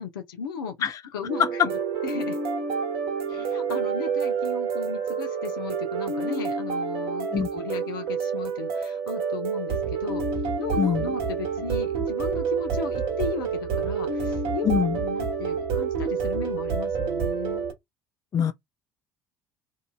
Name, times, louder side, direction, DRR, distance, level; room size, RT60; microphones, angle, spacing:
voice 1, 0.0-0.8 1.1-1.7 2.0-2.4 3.3-17.7, left 6 dB, 75° left, 0.7 m, -36 dB
sound 1, 1.3-17.7, right 5 dB, 55° right, 1.0 m, -28 dB
voice 2, 14.6-15.0 18.3-18.5, left 8 dB, 30° left, 0.4 m, -23 dB
2.8 x 2.5 x 2.3 m
figure-of-eight pair, 60°, 12 cm